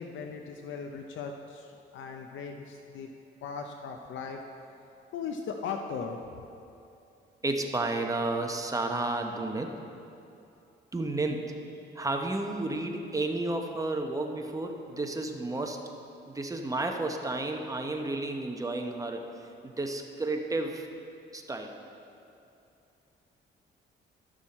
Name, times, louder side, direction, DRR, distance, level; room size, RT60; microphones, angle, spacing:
voice 1, 0.0-3.1 3.4-4.4 5.1-6.2, left 5 dB, 75° left, 4 dB, 0.6 m, -38 dB
voice 2, 7.4-9.7 10.9-11.5 11.9-15.8 16.3-19.3 19.6-20.9 21.3-21.8, right 2 dB, 15° right, 3 dB, 0.9 m, -32 dB
13.0 x 6.2 x 4.2 m, 2.7 s
cardioid pair, 90°, 20 cm